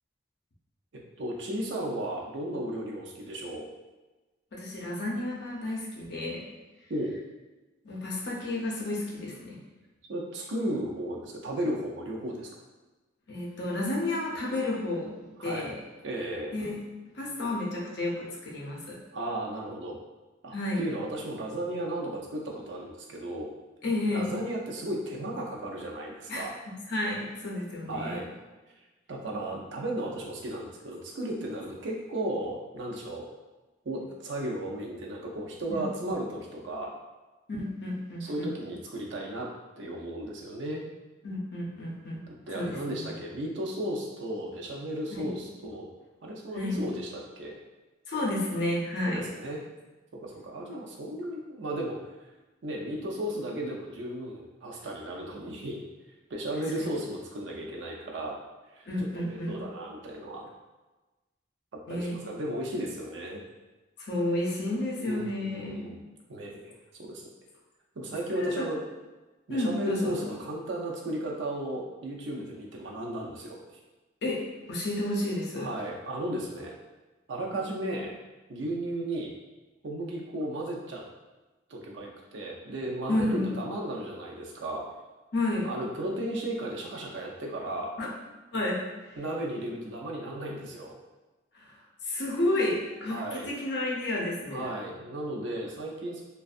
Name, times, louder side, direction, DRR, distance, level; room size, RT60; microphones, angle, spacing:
voice 1, 1.2-3.7 6.9-7.2 10.1-12.5 15.4-15.7 16.0-16.5 19.1-20.0 20.4-23.5 24.1-26.5 27.9-28.3 29.1-33.3 33.8-36.9 38.2-39.5 39.8-40.8 42.5-45.9 46.2-47.6 49.0-49.6 50.1-52.0 52.6-55.9 56.3-58.4 58.7-58.9 59.2-60.5 61.7-63.4 65.1-66.0 66.3-67.2 68.0-68.8 69.5-73.6 75.6-76.7 77.3-78.1 78.5-79.3 79.8-81.0 81.7-84.9 85.6-87.9 89.2-90.9 93.1-93.5 94.5-96.2, right 1 dB, 65° right, -1 dB, 0.5 m, -35 dB
voice 2, 4.5-6.4 7.8-9.6 13.3-15.8 16.5-16.8 17.1-19.0 20.5-20.8 23.8-24.3 26.3-28.2 35.7-36.1 37.5-38.5 41.2-42.2 42.5-43.1 45.1-45.4 46.5-46.8 48.1-49.2 56.8-56.9 58.9-59.7 61.9-62.2 64.0-65.9 68.3-68.7 69.5-70.3 74.2-75.7 83.1-83.5 85.3-85.7 88.0-88.1 88.5-88.8 89.1-89.2 91.5-91.7 92.0-94.7, left 1 dB, 60° left, -3 dB, 0.6 m, -31 dB
2.5 x 2.2 x 2.4 m, 1.2 s
head